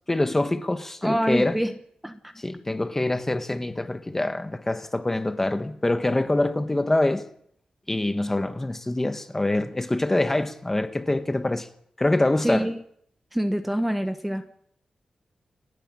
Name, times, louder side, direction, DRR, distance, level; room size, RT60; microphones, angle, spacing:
voice 1, 0.1-1.6 2.4-7.3 7.9-11.7 12.0-12.7, left 2 dB, 15° left, 1.4 m, -25 dB
voice 2, 1.0-1.7 2.0-2.3 12.4-12.8 13.3-14.5, equal, 5° right, 1.1 m, -26 dB
29.5 x 10.0 x 8.9 m
wide cardioid pair, 140°, 2 cm